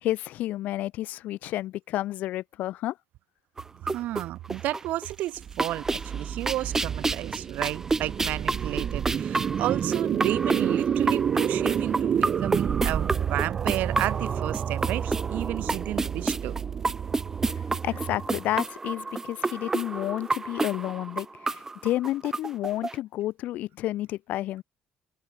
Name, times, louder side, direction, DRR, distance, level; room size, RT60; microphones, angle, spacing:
voice 1, 0.0-2.9 17.5-24.6, left 15 dB, 70° left, 2.8 m, -31 dB
sound 1, 3.6-5.1 5.4-23.0, right 3 dB, 15° right, 1.1 m, -31 dB
voice 2, 3.8-16.5, right 15 dB, 75° right, 7.3 m, -32 dB
sound 2, 5.4-18.6, right 8 dB, 45° right, 2.6 m, -29 dB
open air
cardioid pair, 125°, 3 cm